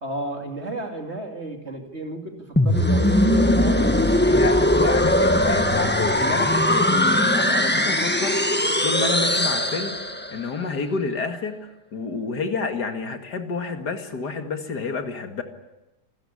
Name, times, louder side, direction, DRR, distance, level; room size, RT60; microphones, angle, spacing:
voice 1, 0.0-4.9, right 2 dB, 40° right, 3 dB, 3.0 m, -34 dB
sound 1, 2.6-10.4, left 1 dB, 5° left, 1.3 m, -20 dB
voice 2, 4.2-10.0 10.3-11.6 11.9-15.4, left 4 dB, 80° left, 6 dB, 2.6 m, -29 dB
27.5 x 14.0 x 9.9 m, 0.95 s
omnidirectional pair, 1.7 m